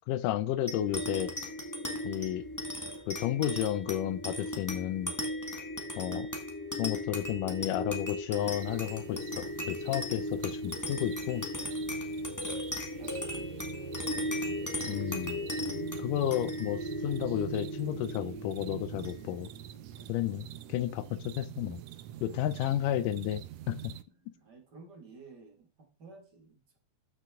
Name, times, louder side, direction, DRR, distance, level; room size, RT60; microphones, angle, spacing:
voice 1, 0.1-1.3 2.0-2.4 3.1-5.1 6.0-6.3 6.8-11.5 14.9-15.4 16.0-19.5 20.1-21.8 22.2-23.9, left 12 dB, 85° left, 2.3 m, -32 dB
sound 1, 0.7-19.5, left 1 dB, 10° left, 0.8 m, -37 dB
sound 2, 8.4-24.0, right 13 dB, 80° right, 1.6 m, -46 dB
voice 2, 13.0-14.0 19.9-20.5 20.9-21.1 22.1-22.5 24.1-26.8, right 3 dB, 35° right, 2.4 m, -55 dB
13.5 x 6.1 x 3.7 m
omnidirectional pair, 3.7 m